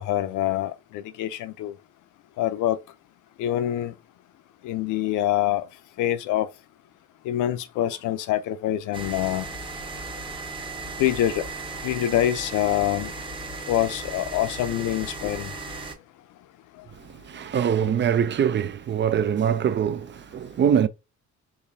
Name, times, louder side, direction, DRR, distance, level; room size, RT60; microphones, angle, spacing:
voice 1, 0.0-1.7 2.4-2.8 3.4-3.9 4.6-5.7 6.0-6.5 7.2-9.5 11.0-11.4 11.8-13.1 13.7-15.5, left 12 dB, 80° left, 0.5 m, -25 dB
sound 1, 8.9-15.9, right 3 dB, 15° right, 0.9 m, -36 dB
voice 2, 16.9-20.9, right 8 dB, 40° right, 0.4 m, -23 dB
4.8 x 3.0 x 2.6 m
cardioid pair, 90°, 30 cm